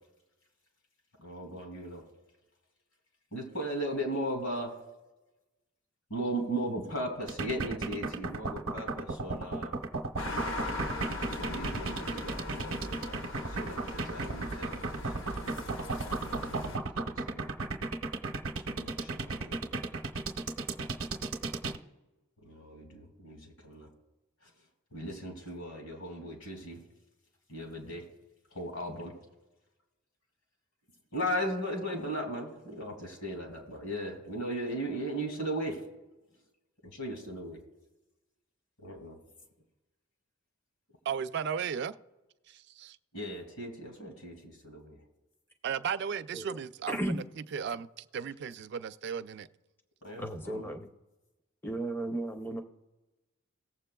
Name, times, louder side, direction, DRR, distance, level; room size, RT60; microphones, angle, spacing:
voice 1, 1.2-2.0 3.3-4.7 6.1-9.7 11.3-15.3 17.0-17.5 18.7-19.8 22.4-23.9 24.9-26.8 27.5-28.1 28.5-29.1 31.1-35.8 36.8-37.6 38.8-39.2 43.1-44.3 44.6-45.0 50.0-50.7, right 1 dB, 75° left, 2.4 m, -37 dB
sound 1, 7.3-21.8, right 3 dB, 70° right, 0.7 m, -34 dB
sound 2, 10.2-16.8, left 2 dB, 60° left, 0.8 m, -39 dB
voice 2, 41.1-42.0 42.5-43.0 45.6-47.2 47.5-49.5, right 7 dB, 50° right, 0.3 m, -35 dB
voice 3, 50.2-50.9 51.6-52.6, right 1 dB, 10° left, 0.5 m, -34 dB
18.5 x 7.4 x 2.2 m
head